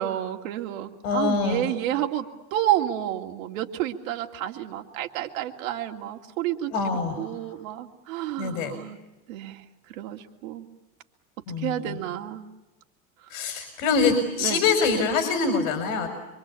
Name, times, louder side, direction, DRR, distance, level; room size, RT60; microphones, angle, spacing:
voice 1, 0.0-2.3 2.5-9.0 9.3-10.7 11.6-12.5 14.4-14.6, right 12 dB, 70° right, 4 dB, 2.9 m, -30 dB
voice 2, 1.0-1.7 6.7-7.3 8.4-8.7 11.5-12.0 13.3-16.1, left 4 dB, 70° left, 6 dB, 5.4 m, -25 dB
26.0 x 25.0 x 8.6 m, 1.1 s
supercardioid pair, 150°, 41 cm